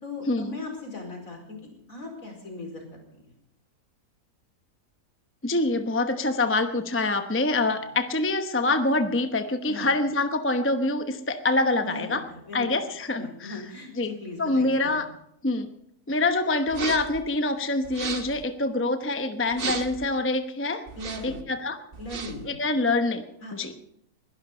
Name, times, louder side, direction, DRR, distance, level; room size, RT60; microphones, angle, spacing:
voice 1, 0.0-1.6 1.9-2.8 3.1-3.3 7.8-7.9 9.6-9.9 11.8-12.7 13.2-14.9 21.0-21.4 22.0-22.4 23.4-23.5, left 2 dB, 65° left, 2 dB, 5.0 m, -38 dB
voice 2, 5.4-12.2 12.5-13.6 14.0-14.1 14.4-15.1 15.4-15.7 16.1-20.8 21.2-21.8 22.4-23.2 23.5-23.7, left 2 dB, 10° left, 7 dB, 0.7 m, -25 dB
sound 1, 16.7-17.2 17.8-18.4 19.5-20.1 20.9-21.4 21.9-22.5, right 4 dB, 40° right, 1.2 m, -34 dB
21.5 x 11.5 x 5.5 m, 0.77 s
omnidirectional pair, 1.6 m